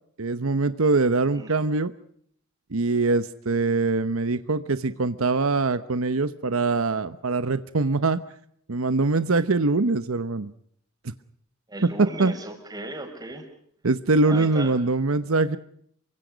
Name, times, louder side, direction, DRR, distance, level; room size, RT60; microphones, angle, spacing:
voice 1, 0.2-1.9 2.7-8.2 8.7-10.5 12.0-12.3 13.8-15.6, right 3 dB, 85° right, 12 dB, 1.0 m, -23 dB
voice 2, 1.3-1.6 11.7-13.5 14.2-14.8, right 1 dB, 20° right, 3 dB, 5.6 m, -36 dB
28.5 x 24.0 x 5.2 m, 0.67 s
head